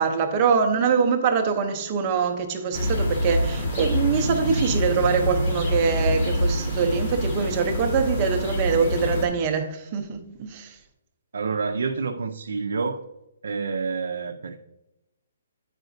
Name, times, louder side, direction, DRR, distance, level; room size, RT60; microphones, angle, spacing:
voice 1, 0.0-10.7, right 6 dB, 25° right, 0.7 m, -24 dB
sound 1, 2.7-9.3, equal, 35° left, 1.6 m, -26 dB
voice 2, 11.3-13.0 13.4-14.6, right 4 dB, 80° right, 0.5 m, -28 dB
9.0 x 5.0 x 2.6 m
hypercardioid pair, 170°, 0 cm